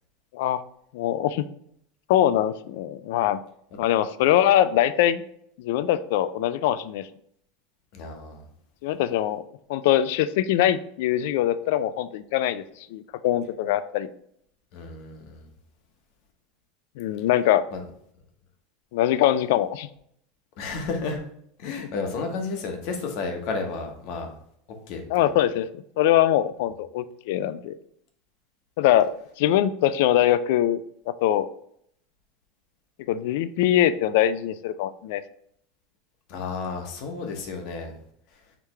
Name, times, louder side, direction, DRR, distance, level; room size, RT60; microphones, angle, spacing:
voice 1, 0.9-1.5 2.1-3.4 3.8-5.2 5.6-7.1 8.8-9.4 9.7-12.6 12.9-14.1 17.0-17.6 18.9-19.9 21.8-21.9 25.1-27.7 28.8-29.1 29.4-30.8 31.1-31.5 33.1-35.2, left 12 dB, 70° left, 14 dB, 0.3 m, -22 dB
voice 2, 7.9-8.5 14.7-15.5 17.7-17.8 20.6-21.2 21.6-24.3 24.9-25.3 36.3-37.9, left 4 dB, 55° left, 4 dB, 1.0 m, -32 dB
4.8 x 3.4 x 3.2 m, 0.69 s
supercardioid pair, 155°, 0 cm